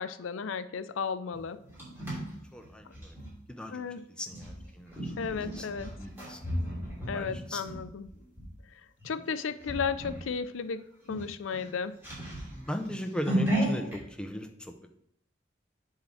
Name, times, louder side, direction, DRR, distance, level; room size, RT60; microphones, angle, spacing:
voice 1, 0.0-1.6 2.9-3.0 3.7-4.0 5.2-5.9 7.1-8.1 9.0-10.8 11.1-11.9, left 6 dB, 85° left, 13 dB, 0.5 m, -34 dB
sound 1, 1.3-3.3 4.3-8.5 9.0-9.2 9.6-10.3 10.6-10.7 11.0-14.0, right 1 dB, 10° right, 2.7 m, -34 dB
voice 2, 2.5-3.2 3.5-3.8 4.2-6.4 7.1-7.6 12.5-14.9, equal, 5° left, 5 dB, 0.6 m, -38 dB
7.5 x 3.7 x 6.2 m, 0.76 s
head